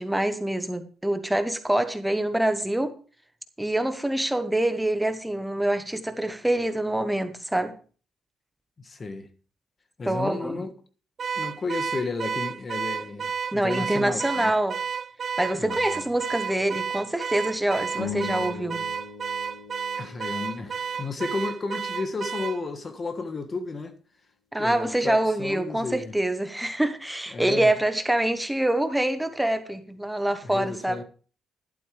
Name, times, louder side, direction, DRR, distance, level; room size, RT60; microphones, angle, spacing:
voice 1, 0.0-3.0 3.6-7.7 10.1-10.6 13.5-14.8 15.4-18.9 24.5-31.0, right 1 dB, 5° right, 1.1 m, -25 dB
voice 2, 8.8-9.3 10.0-10.7 11.3-14.5 15.6-16.0 20.0-24.0 24.6-26.1 27.3-27.7 30.4-31.0, left 3 dB, 35° left, 1.4 m, -33 dB
Car / Alarm, 11.2-22.6, right 7 dB, 50° right, 0.4 m, -31 dB
sound 1, 17.9-22.4, left 7 dB, 75° left, 2.6 m, -40 dB
12.0 x 11.5 x 3.4 m
cardioid pair, 90°, 0 cm